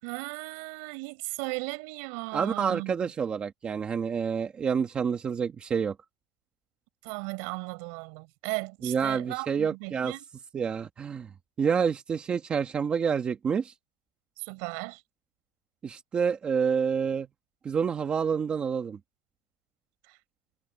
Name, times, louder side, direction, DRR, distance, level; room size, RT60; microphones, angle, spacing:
voice 1, 0.0-3.1 7.0-10.2 14.4-15.0 20.1-20.2, right 31 dB, 60° right, 6.3 m, -36 dB
voice 2, 2.3-5.9 8.8-10.2 10.5-11.3 11.6-13.7 15.8-17.3 17.6-19.0, right 6 dB, 20° right, 1.2 m, -28 dB
cardioid pair, 175°, 6 cm